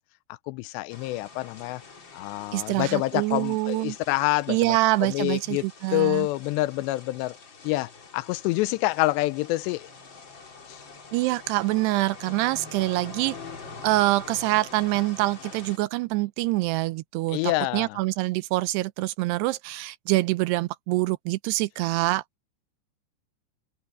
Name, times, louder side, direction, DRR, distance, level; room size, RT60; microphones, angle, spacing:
voice 1, 0.3-1.8 2.1-5.6 5.9-7.4 7.6-9.9 10.7-10.8 17.3-18.0, left 19 dB, 85° left, 2.8 m, -27 dB
sound 1, 0.9-15.8, left 4 dB, 30° left, 3.1 m, -45 dB
voice 2, 2.5-4.0 4.5-6.3 11.1-13.4 13.8-17.4 17.7-22.2, right 19 dB, 80° right, 2.6 m, -25 dB
omnidirectional pair, 5.0 m